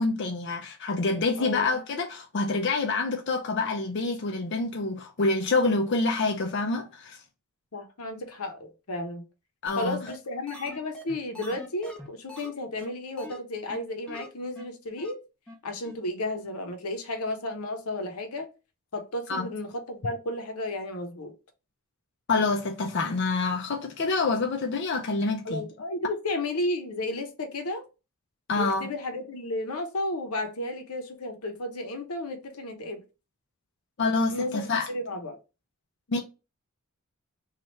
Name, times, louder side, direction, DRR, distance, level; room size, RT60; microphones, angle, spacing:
voice 1, 0.0-7.2 9.6-10.0 19.3-19.5 22.3-25.7 28.5-28.9 34.0-34.9 36.1-36.2, left 3 dB, 50° left, 0.5 m, -27 dB
voice 2, 1.4-1.7 7.7-9.2 9.8-15.2 15.6-18.5 18.9-21.3 25.4-27.8 28.5-33.0 34.3-35.4, left 1 dB, 85° left, 0.8 m, -33 dB
sound 1, 9.7-9.8 10.1-10.2 10.5-12.5 12.8-12.9 13.2-13.4 13.7-13.8 14.1-14.3 14.6-14.7 15.0-15.1 15.5-15.6 15.8-15.9, equal, 5° left, 0.6 m, -42 dB
3.1 x 2.4 x 4.1 m
head